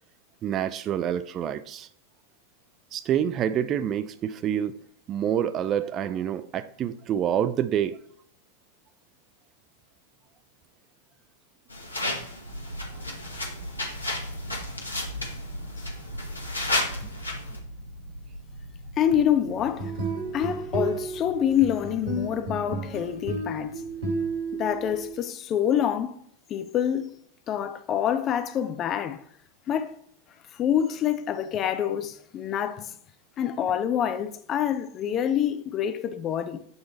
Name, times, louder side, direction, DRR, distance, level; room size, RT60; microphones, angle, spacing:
voice 1, 0.4-1.9 2.9-4.7 5.1-8.0, right 9 dB, 30° right, 0.3 m, -27 dB
sound 1, 11.7-17.6, left 2 dB, 80° left, 1.2 m, -33 dB
sound 2, 12.4-24.3, equal, 80° right, 1.7 m, -41 dB
voice 2, 19.0-19.9 20.3-23.8 24.5-26.2 26.5-27.2 27.5-29.2 29.7-30.0 30.5-32.9 33.4-36.6, left 9 dB, 30° left, 0.5 m, -26 dB
sound 3, 19.6-25.1, right 3 dB, 60° right, 2.2 m, -32 dB
8.0 x 3.1 x 4.1 m
figure-of-eight pair, 90°, 0 cm